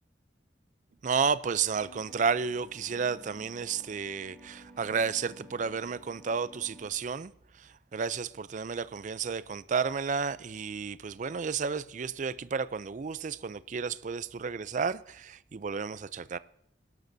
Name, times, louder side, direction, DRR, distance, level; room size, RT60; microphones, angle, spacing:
voice 1, 1.0-7.3 7.6-16.4, right 5 dB, 45° right, 0.4 m, -32 dB
sound 1, 1.7-6.9, left 1 dB, 10° left, 6.3 m, -53 dB
22.0 x 12.0 x 2.7 m
head